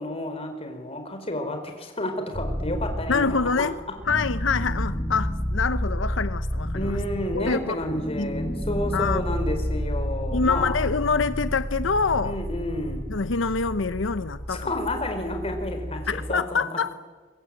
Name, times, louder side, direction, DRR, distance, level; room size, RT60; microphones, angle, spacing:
voice 1, 0.0-3.7 6.7-10.8 12.2-13.0 14.5-16.8, left 1 dB, 30° left, 5 dB, 4.6 m, -30 dB
sound 1, 2.3-16.4, equal, 15° left, 2.7 m, -30 dB
voice 2, 3.1-3.7 4.1-7.0 7.3-8.4 8.9-9.2 10.3-12.4 13.1-14.7 16.1-16.9, left 4 dB, 90° left, 13 dB, 0.8 m, -26 dB
23.5 x 22.5 x 9.3 m, 1.4 s
head